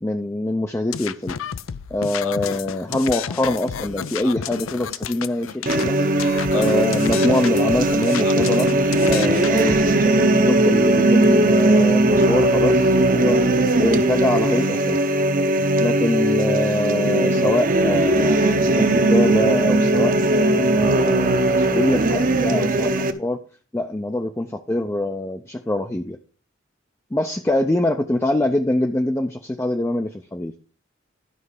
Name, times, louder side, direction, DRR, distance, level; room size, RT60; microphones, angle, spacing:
voice 1, 0.0-1.4 1.9-6.0 6.5-8.7 9.1-13.5 13.8-15.0 15.8-23.4 23.7-26.2 27.1-30.5, left 1 dB, 15° left, 5 dB, 0.5 m, -24 dB
sound 1, 0.9-5.9 6.2-10.0, left 7 dB, 85° left, 0.5 m, -31 dB
sound 2, 5.7-23.1, right 1 dB, 45° right, 0.9 m, -18 dB
12.0 x 5.6 x 4.8 m, 0.37 s
head